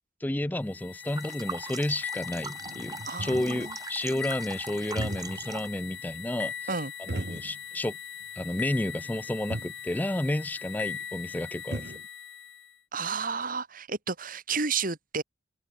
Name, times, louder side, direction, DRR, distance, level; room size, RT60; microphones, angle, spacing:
voice 1, 0.2-6.5 7.0-8.0 8.4-11.9, left 1 dB, 10° left, 0.5 m, -31 dB
sound 1, 0.6-12.7, left 7 dB, 80° left, 2.1 m, -40 dB
sound 2, 0.7-0.8 1.2-1.3 1.9-2.0 2.3-3.7 4.8-5.6 5.9-6.0 7.1-7.9 8.2-8.3 9.2-9.3 9.5-9.8 11.2-11.3 11.4-12.1, right 1 dB, 70° right, 1.5 m, -37 dB
sound 3, 1.0-5.8, right 4 dB, 20° right, 1.8 m, -41 dB
voice 2, 3.0-3.7 6.7-6.9 12.9-15.2, right 5 dB, 50° right, 3.1 m, -31 dB
head